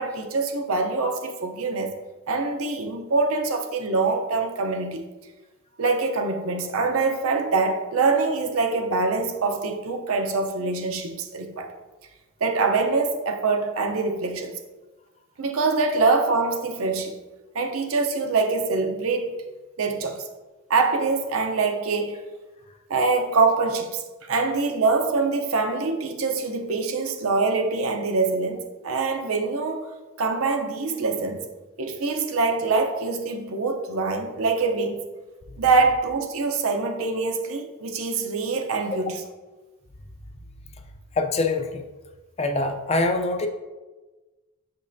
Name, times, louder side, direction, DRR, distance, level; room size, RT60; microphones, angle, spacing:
voice 1, 0.0-1.9 2.3-5.0 5.8-11.7 12.4-14.6 15.4-17.2 17.5-19.3 19.8-20.3 20.7-22.2 22.9-29.9 30.2-31.5 31.8-35.0 35.6-39.2, right 3 dB, 75° right, 0.6 m, -24 dB
voice 2, 41.2-41.8 42.4-43.5, left 2 dB, 30° left, 0.4 m, -24 dB
6.8 x 5.3 x 2.6 m
head